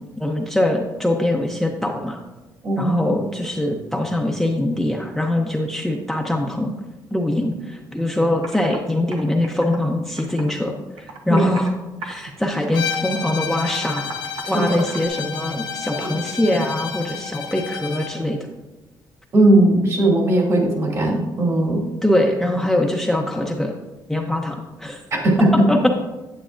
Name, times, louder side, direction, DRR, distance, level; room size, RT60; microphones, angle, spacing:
voice 1, 0.2-2.2 2.8-6.7 7.1-11.7 12.0-14.1 14.5-18.4 22.0-23.7 24.1-25.0 25.7-25.9, left 1 dB, 5° left, 0 dB, 0.6 m, -22 dB
voice 2, 2.6-3.1 11.3-11.5 14.4-14.8 16.0-16.1 19.3-21.8 25.1-25.5, right 1 dB, 45° right, -1 dB, 2.6 m, -18 dB
Computer keyboard, 8.0-8.1 8.4-8.8 9.1-10.6 11.0-11.7 12.0-12.4 12.7-15.1, right 4 dB, 90° right, 1.0 m, -37 dB
Bowed string instrument, 12.7-18.2, left 6 dB, 70° left, 0.9 m, -30 dB
9.3 x 8.6 x 2.5 m, 1.1 s
cardioid pair, 115°, 8 cm